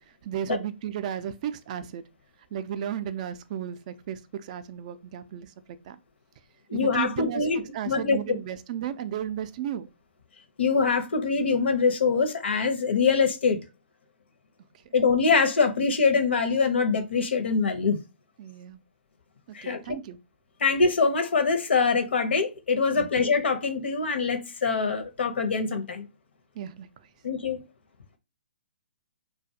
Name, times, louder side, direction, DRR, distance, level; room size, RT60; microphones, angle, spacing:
voice 1, 0.2-2.0 2.5-5.5 5.9-6.0 6.7-9.9 14.9-15.0 18.4-18.8 19.6-20.2 22.9-23.1 26.6-26.9, right 10 dB, 40° right, 0.3 m, -34 dB
voice 2, 6.7-7.6 7.9-8.4 10.6-13.6 14.9-18.0 19.5-20.0 20.6-26.1 27.2-27.6, left 4 dB, 75° left, 0.7 m, -24 dB
2.4 x 2.2 x 2.7 m
hypercardioid pair, 140°, 6 cm